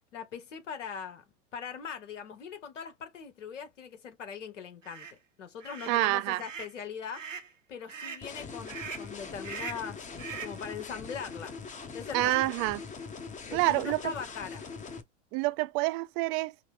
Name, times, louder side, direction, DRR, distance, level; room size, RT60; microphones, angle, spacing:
voice 1, 0.1-1.2 1.5-5.1 5.4-7.2 7.7-11.5 11.9-12.5 13.5-14.6, left 6 dB, 75° left, 1.5 m, -41 dB
sound 1, 4.8-5.1 5.6-6.0 6.4-6.7 7.1-7.5 7.9-8.3 8.7-9.1 9.4-9.9 10.2-10.6, right 6 dB, 85° right, 1.1 m, -41 dB
voice 2, 5.9-6.4 12.1-12.8 13.5-14.0 15.3-16.5, right 19 dB, 40° right, 0.5 m, -27 dB
sound 2, 8.2-15.0, left 5 dB, 20° left, 0.9 m, -42 dB
5.6 x 2.2 x 3.4 m
hypercardioid pair, 90°, 37 cm